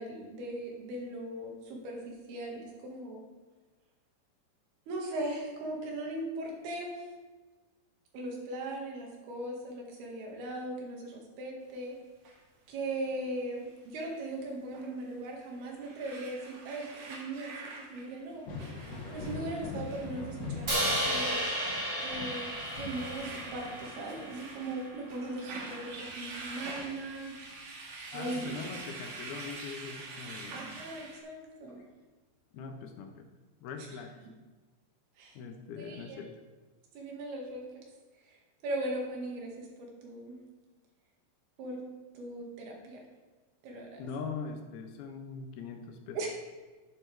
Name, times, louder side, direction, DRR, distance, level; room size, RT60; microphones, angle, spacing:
voice 1, 0.0-3.2 4.9-7.1 8.1-12.0 12.7-17.6 17.9-18.4 19.1-21.4 22.0-27.3 28.1-28.6 30.5-31.8 35.2-35.4 35.8-36.2 37.0-37.7 38.3-38.4 38.6-40.4 41.6-41.9 42.2-43.0 43.6-44.0 46.2-46.3, right 2 dB, 85° right, 0 dB, 3.8 m, -39 dB
sound 1, 12.2-12.4 14.7-14.9 15.5-31.2, right 3 dB, 55° right, 2.3 m, -46 dB
Thunder, 18.3-27.6 28.0-29.2 30.8-30.9 31.7-31.8, left 3 dB, 60° left, 3.4 m, -44 dB
Crash cymbal, 20.7-24.9, equal, 30° right, 1.6 m, -33 dB
voice 2, 28.1-30.6 32.5-33.3 33.6-34.2 35.3-36.3 44.0-46.2, left 5 dB, 80° left, 4 dB, 2.9 m, -41 dB
11.0 x 10.5 x 3.4 m, 1.3 s
omnidirectional pair, 4.5 m